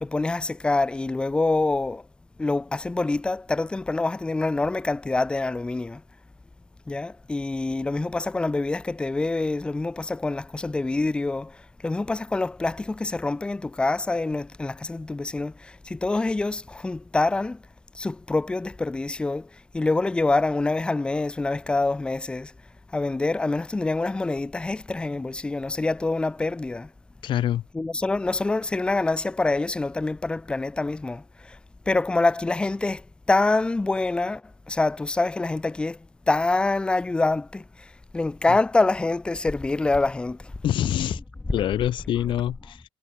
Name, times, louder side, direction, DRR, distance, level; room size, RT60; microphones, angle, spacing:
voice 1, 0.0-2.0 2.4-6.0 6.9-17.6 17.9-22.5 22.9-26.9 27.7-31.6 31.9-40.5 41.5-41.6, left 3 dB, 10° left, 0.4 m, -26 dB
voice 2, 27.2-27.6 40.6-41.2 41.5-42.8, left 12 dB, 55° left, 0.7 m, -25 dB
cardioid pair, 105°, 10 cm